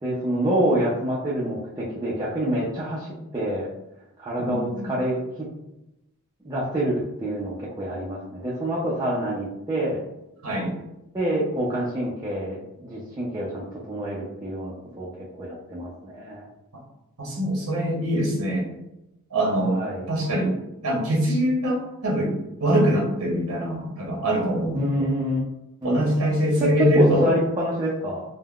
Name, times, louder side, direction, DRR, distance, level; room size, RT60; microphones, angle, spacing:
voice 1, 0.0-3.7 4.2-5.2 6.4-10.0 11.1-15.1 15.4-16.5 19.6-20.1 24.7-25.4 25.8-26.1 26.8-28.2, right 1 dB, 15° right, -7 dB, 0.4 m, -27 dB
voice 2, 4.4-4.9 10.4-10.7 17.2-18.6 19.3-19.8 20.1-20.5 20.8-22.3 22.6-25.1 25.8-27.3, equal, 75° right, -3 dB, 0.9 m, -23 dB
3.5 x 2.1 x 2.3 m, 0.90 s
head